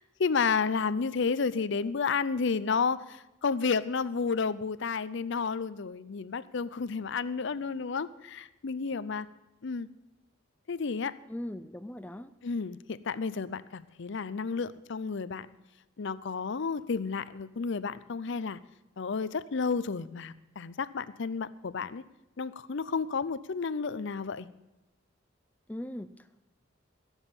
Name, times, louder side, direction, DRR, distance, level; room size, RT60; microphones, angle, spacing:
voice 1, 0.0-9.3 9.6-9.9 10.7-11.1 12.4-15.5 16.0-18.6 19.0-22.0 22.4-24.5, left 5 dB, 65° left, 16 dB, 0.6 m, -31 dB
voice 2, 11.3-12.3 25.7-26.4, left 1 dB, 10° left, 12 dB, 0.4 m, -39 dB
16.0 x 7.2 x 7.1 m, 0.96 s
head